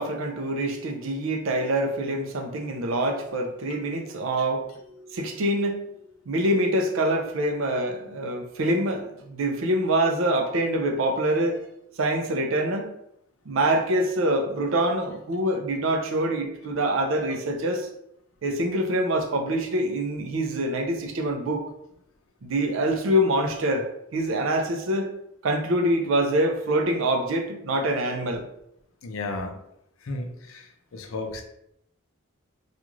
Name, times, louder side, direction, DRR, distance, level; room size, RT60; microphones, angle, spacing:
voice 1, 0.0-4.7 5.1-5.9 6.3-11.6 12.0-12.9 13.5-17.9 18.4-21.6 22.4-23.9 24.1-25.1 25.4-28.4, right 1 dB, 70° right, 3 dB, 0.5 m, -25 dB
voice 2, 29.0-29.6 30.0-31.4, left 2 dB, 75° left, 3 dB, 0.5 m, -34 dB
2.4 x 2.4 x 3.0 m, 0.76 s
head